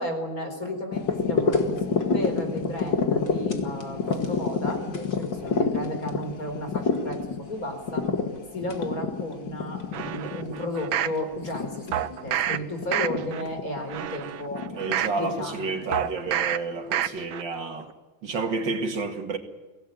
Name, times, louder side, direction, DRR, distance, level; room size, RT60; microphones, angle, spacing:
voice 1, 0.0-8.1 8.5-14.6 15.1-15.9, left 1 dB, 45° left, 5.0 m, -34 dB
sound 1, 0.9-16.5 17.1-17.2, left 4 dB, 65° left, 2.7 m, -29 dB
sound 2, 9.9-11.2 11.9-12.6 12.9-13.4 13.9-15.2 15.9-16.6 16.9-17.4 17.8-17.9, right 11 dB, 85° right, 1.8 m, -28 dB
voice 2, 14.7-17.9 18.2-19.4, right 3 dB, 70° right, 2.7 m, -30 dB
24.0 x 18.0 x 9.4 m
omnidirectional pair, 2.1 m